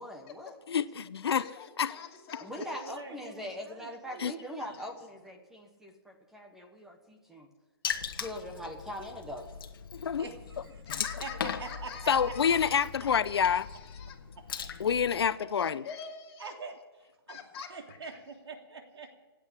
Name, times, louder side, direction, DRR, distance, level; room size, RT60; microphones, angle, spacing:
voice 1, 0.0-0.6 2.4-7.5 8.1-9.5, equal, 5° right, 1.2 m, -42 dB
voice 2, 0.7-1.5 1.8-1.9 4.2-4.3 9.9-10.3 12.1-13.7 14.8-15.8, left 7 dB, 75° left, 0.7 m, -27 dB
voice 3, 1.4-2.9 4.5-4.9 10.9-13.2 13.5-14.2 15.4-16.5 17.3-18.1, left 6 dB, 25° left, 2.7 m, -46 dB
voice 4, 2.6-4.8 10.2-10.8 11.2-11.3 11.6-12.6 14.4-14.5 16.4-16.8 17.0-17.4 17.7-19.1, right 4 dB, 85° right, 3.1 m, -45 dB
Water / Splash splatter, 7.8-15.3, left 7 dB, 55° left, 1.5 m, -39 dB
17.0 x 8.6 x 9.9 m
hypercardioid pair, 170°, 13 cm